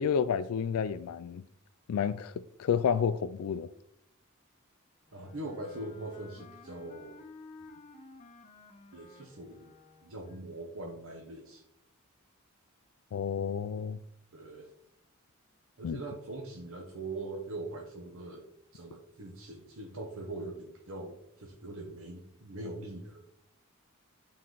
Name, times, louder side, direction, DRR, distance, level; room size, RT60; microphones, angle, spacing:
voice 1, 0.0-1.4 1.9-2.3 2.6-3.7 13.1-14.0 15.8-16.0, left 7 dB, 75° left, 0.3 m, -30 dB
Wind instrument woodwind instrument, 5.1-10.4, left 3 dB, 35° left, 1.3 m, -53 dB
voice 2, 5.1-7.1 8.9-9.7 10.0-11.6 14.3-14.7 15.8-18.4 18.7-23.3, right 2 dB, 65° right, 1.0 m, -42 dB
9.5 x 4.2 x 3.9 m
head